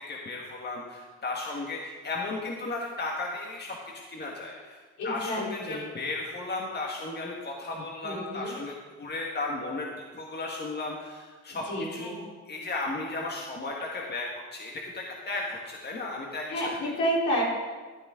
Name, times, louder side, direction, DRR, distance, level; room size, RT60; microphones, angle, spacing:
voice 1, 0.1-11.6 11.9-12.2 12.5-14.3 14.5-16.6, left 3 dB, 35° left, -1 dB, 1.6 m, -35 dB
voice 2, 5.0-5.9 8.0-8.5 11.7-12.2 16.5-17.4, equal, 75° left, -4 dB, 3.9 m, -30 dB
12.5 x 9.2 x 3.7 m, 1.4 s
cardioid pair, 90°, 30 cm